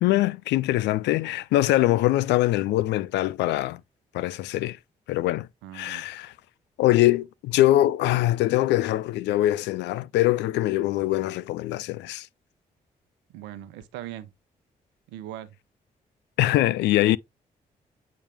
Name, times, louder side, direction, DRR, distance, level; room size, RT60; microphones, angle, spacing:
voice 1, 0.0-3.8 4.1-4.8 5.1-5.5 5.7-6.3 6.8-12.3 16.4-17.2, left 15 dB, 80° left, 0.4 m, -23 dB
voice 2, 5.6-6.1 13.3-14.3 15.1-15.5, right 13 dB, 85° right, 0.8 m, -40 dB
8.6 x 3.5 x 3.4 m
hypercardioid pair, 45°, 18 cm